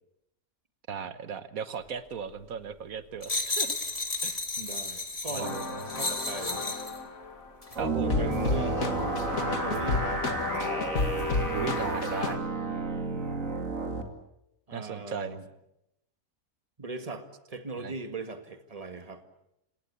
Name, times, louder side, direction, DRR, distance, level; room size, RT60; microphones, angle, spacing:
voice 1, 0.9-3.8 4.2-4.4 5.3-5.8 7.8-8.3 11.5-12.4 14.7-15.4 17.8-17.9, right 7 dB, 85° right, 12 dB, 1.6 m, -36 dB
sound 1, 3.2-7.0 7.6-7.8, left 3 dB, 25° left, 2.1 m, -33 dB
voice 2, 4.6-5.6 6.0-6.8 8.0-8.9 9.5-10.3 12.6-12.9 14.7-15.4 16.8-19.2, right 3 dB, 25° right, 8 dB, 1.9 m, -39 dB
sound 2, 5.4-7.5 8.1-12.4, left 3 dB, 85° left, 2.6 m, -31 dB
sound 3, 7.8-14.0, right 3 dB, 70° right, 2.9 m, -32 dB
29.0 x 17.5 x 8.4 m, 0.85 s
omnidirectional pair, 1.4 m